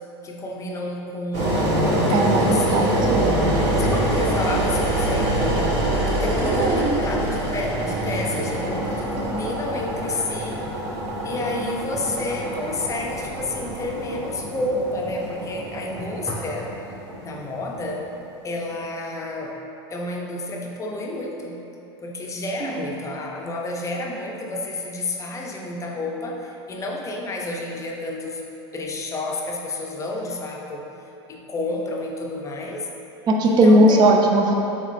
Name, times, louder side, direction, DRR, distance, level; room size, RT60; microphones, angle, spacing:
voice 1, 0.2-3.0 3.8-5.7 6.1-10.7 11.2-16.7 17.2-18.1 18.4-19.6 19.9-21.6 22.0-28.4 28.7-30.9 31.3-32.9 33.4-34.2, left 2 dB, 20° left, 0 dB, 0.5 m, -30 dB
Engine, 1.3-18.2, right 1 dB, 50° right, 1.5 m, -25 dB
voice 2, 2.1-3.4 6.4-7.0 22.6-22.8 33.3-34.5, right 1 dB, 30° right, 1 dB, 0.4 m, -18 dB
3.8 x 3.5 x 3.2 m, 2.8 s
hypercardioid pair, 95°, 14 cm